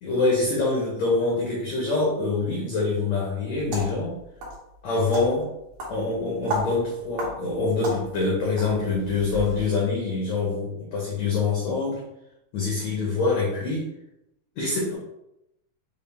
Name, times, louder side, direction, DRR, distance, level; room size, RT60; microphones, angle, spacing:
voice 1, 0.0-4.1 4.8-5.5 5.9-12.0 12.5-13.9 14.6-14.9, left 3 dB, 85° left, -4 dB, 1.5 m, -25 dB
sound 1, 3.5-9.7, equal, 65° right, 2.2 m, -35 dB
6.3 x 2.3 x 3.5 m, 0.85 s
omnidirectional pair, 4.6 m